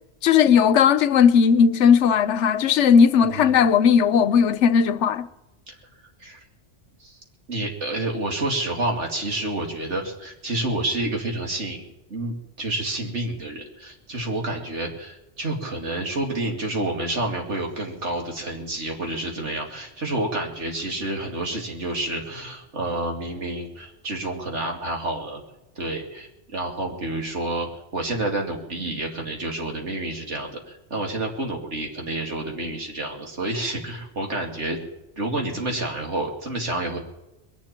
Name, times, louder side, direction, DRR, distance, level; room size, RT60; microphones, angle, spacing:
voice 1, 0.2-5.3, left 7 dB, 85° left, 1.0 m, -17 dB
voice 2, 3.2-3.6 5.7-5.8 6.2-6.4 7.0-7.2 7.5-25.4 25.8-27.7 27.9-34.8 35.2-37.0, right 2 dB, 85° right, 2.9 m, -29 dB
21.0 x 7.4 x 8.8 m
omnidirectional pair, 1.2 m